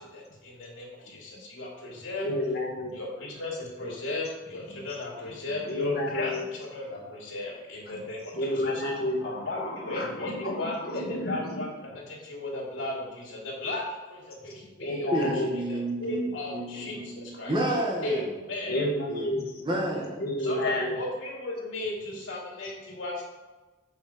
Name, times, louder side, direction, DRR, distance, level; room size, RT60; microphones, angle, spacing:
voice 1, 0.0-2.3 2.9-8.4 9.2-15.3 15.7-17.5 18.0-18.8 20.4-23.2, left 2 dB, 75° left, -3 dB, 2.7 m, -35 dB
voice 2, 2.2-2.9 4.7-6.4 7.9-8.0 8.3-11.7 14.5-15.5 18.7-19.4 20.2-21.0, left 1 dB, 50° left, -1 dB, 1.6 m, -31 dB
voice 3, 15.1-18.3 19.1-19.3 19.6-20.2, right 1 dB, 25° right, -2 dB, 1.4 m, -30 dB
7.1 x 5.7 x 4.9 m, 1.2 s
head